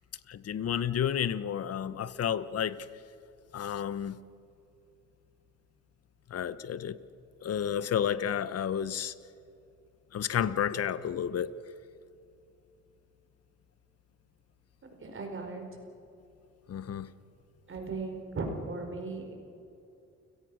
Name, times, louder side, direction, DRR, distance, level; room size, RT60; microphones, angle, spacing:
voice 1, 0.3-2.9 3.5-4.2 6.3-7.0 7.4-9.1 10.1-11.5 16.7-17.1, left 9 dB, 55° left, 16 dB, 1.1 m, -31 dB
voice 2, 15.0-15.6 17.7-19.3, right 3 dB, 45° right, 4 dB, 4.9 m, -37 dB
30.0 x 17.5 x 6.3 m, 2.7 s
cardioid pair, 90°, 30 cm